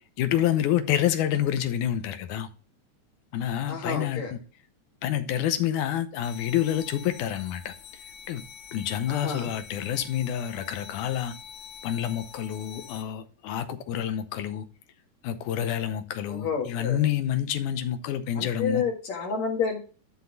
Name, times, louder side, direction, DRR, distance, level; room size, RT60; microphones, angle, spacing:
voice 1, 0.2-2.5 3.3-4.4 5.0-7.7 8.3-8.4 8.7-11.3 11.8-14.7 15.2-18.8, left 11 dB, 85° left, 2.3 m, -28 dB
voice 2, 3.7-4.3 9.1-9.5 16.3-17.0 18.4-19.8, left 5 dB, 65° left, 3.0 m, -30 dB
sound 1, 6.2-13.0, left 7 dB, 50° left, 2.9 m, -46 dB
11.5 x 4.2 x 4.0 m
omnidirectional pair, 3.5 m